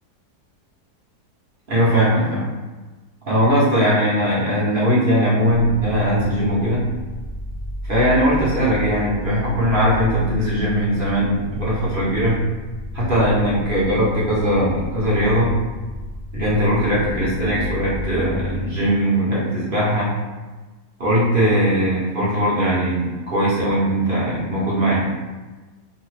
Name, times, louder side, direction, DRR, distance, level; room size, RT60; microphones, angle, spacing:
voice 1, 1.7-2.5 3.3-6.8 7.8-12.4 12.9-15.5 16.3-20.1 21.0-25.0, equal, 45° right, -8 dB, 0.8 m, -19 dB
sound 1, 5.5-18.7, equal, 55° left, 0.7 m, -32 dB
2.8 x 2.2 x 3.1 m, 1.2 s
omnidirectional pair, 1.7 m